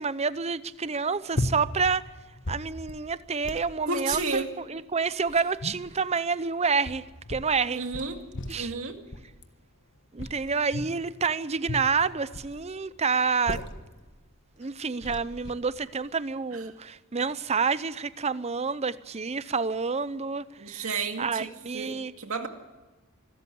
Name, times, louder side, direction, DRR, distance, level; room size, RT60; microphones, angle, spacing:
voice 1, 0.0-2.0 2.5-4.4 4.7-7.0 7.3-7.8 8.5-8.7 10.1-13.6 14.6-20.9 21.2-22.1, right 5 dB, 30° right, 0.6 m, -28 dB
sound 1, 1.3-2.0 2.3-3.1 3.4-3.7 4.1-4.4 5.0-6.0 6.7-7.5 7.9-8.7 9.1-9.4 10.2-11.0 11.6-12.6 13.2-13.9 14.6-14.7 15.0-15.5, left 1 dB, 55° left, 1.4 m, -35 dB
voice 2, 3.8-4.5 7.7-8.2 8.5-9.0 16.5-16.6 20.6-22.5, right 4 dB, 70° right, 2.2 m, -32 dB
26.0 x 13.0 x 8.4 m
head